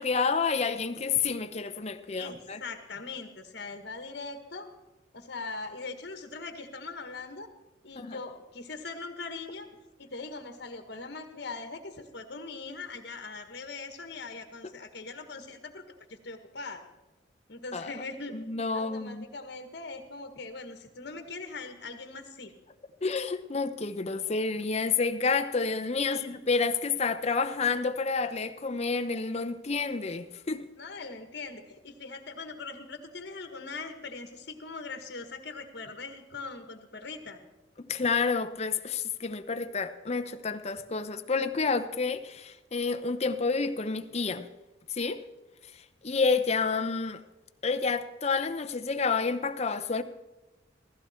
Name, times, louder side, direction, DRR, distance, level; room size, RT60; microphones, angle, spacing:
voice 1, 0.0-2.6 8.0-8.2 14.6-14.7 17.7-17.9 18.3-19.3 23.0-30.7 37.8-44.5 44.9-45.2 45.7-47.2 47.6-50.0, left 4 dB, 35° left, 0.7 m, -29 dB
voice 2, 2.2-4.7 5.1-7.5 7.8-9.7 10.0-15.8 16.1-16.8 17.5-18.4 18.7-22.5 26.0-26.4 30.8-37.4, left 3 dB, 60° left, 1.6 m, -41 dB
15.5 x 15.0 x 4.4 m
head